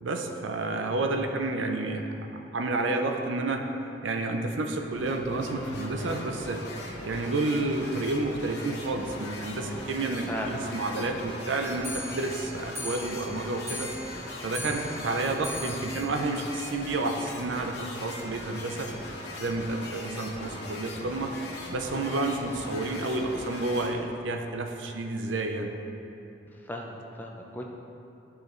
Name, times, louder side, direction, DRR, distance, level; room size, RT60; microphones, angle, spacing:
voice 1, 0.0-2.1 2.5-3.7 4.0-6.7 7.0-13.9 14.4-18.9 19.4-21.3 21.7-25.7, right 2 dB, 80° right, 4 dB, 0.6 m, -30 dB
sound 1, 4.9-23.9, left 1 dB, 65° left, 1.0 m, -40 dB
Clock, 11.8-17.3 17.6-17.7 18.0-18.1 18.4-18.5 18.7-18.8 19.5-19.6 20.3-20.4 21.1-21.2, left 1 dB, 15° right, 1.6 m, -41 dB
voice 2, 26.6-27.6, equal, 10° left, 0 dB, 0.5 m, -36 dB
12.0 x 4.9 x 3.1 m, 2.8 s
head